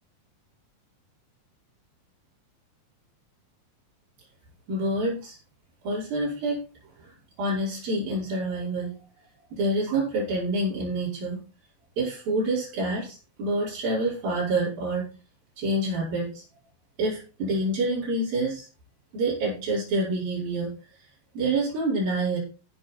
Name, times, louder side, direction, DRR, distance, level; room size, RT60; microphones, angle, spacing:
voice 1, 4.7-5.4 5.8-6.6 7.0-8.9 9.5-11.4 12.0-15.1 15.6-16.4 17.0-18.7 19.1-20.7 21.3-22.4, right 2 dB, 85° right, -6 dB, 7.1 m, -27 dB
15.0 x 6.6 x 4.4 m, 0.33 s
omnidirectional pair, 4.0 m